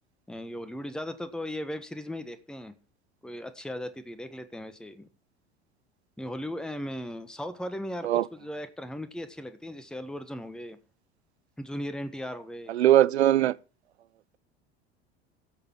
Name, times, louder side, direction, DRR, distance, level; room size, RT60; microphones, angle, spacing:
voice 1, 0.3-2.7 3.2-5.1 6.2-10.8 11.6-12.7 13.4-13.5, left 1 dB, ahead, 1.3 m, -37 dB
voice 2, 12.7-13.5, right 13 dB, 90° right, 0.5 m, -20 dB
16.5 x 6.8 x 4.5 m
hypercardioid pair, 75°, 32 cm